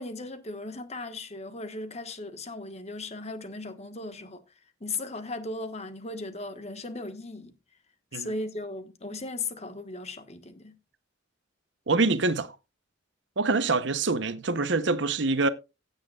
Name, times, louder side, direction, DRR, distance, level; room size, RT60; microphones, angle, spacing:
voice 1, 0.0-4.4 4.8-7.5 8.1-10.8, left 2 dB, 35° left, 1.4 m, -37 dB
voice 2, 11.9-12.6 13.4-15.5, right 3 dB, 65° right, 0.9 m, -25 dB
16.0 x 8.0 x 2.4 m
head